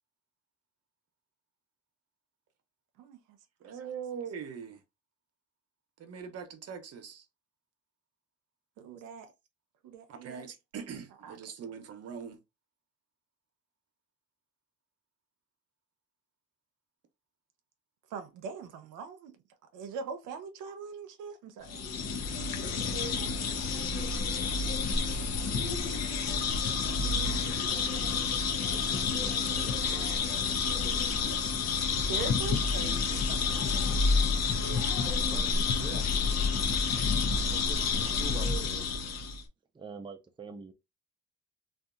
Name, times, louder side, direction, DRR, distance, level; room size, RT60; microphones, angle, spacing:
voice 1, 3.6-4.8 6.0-7.3 10.1-12.4, right 7 dB, 55° right, 0.7 m, -42 dB
voice 2, 8.8-9.3 9.8-10.5 11.2-11.4 18.1-19.3 19.7-21.8 22.7-23.0 23.2-23.3 31.9-33.7 35.9-36.4 38.1-39.2, right 5 dB, 90° right, 0.6 m, -42 dB
sound 1, 21.7-39.4, left 5 dB, 60° left, 0.7 m, -29 dB
voice 3, 28.7-30.1 35.2-35.5 35.8-36.0 37.5-38.8 39.8-40.7, right 4 dB, 15° right, 0.4 m, -45 dB
2.7 x 2.3 x 2.3 m
cardioid pair, 90°, 30 cm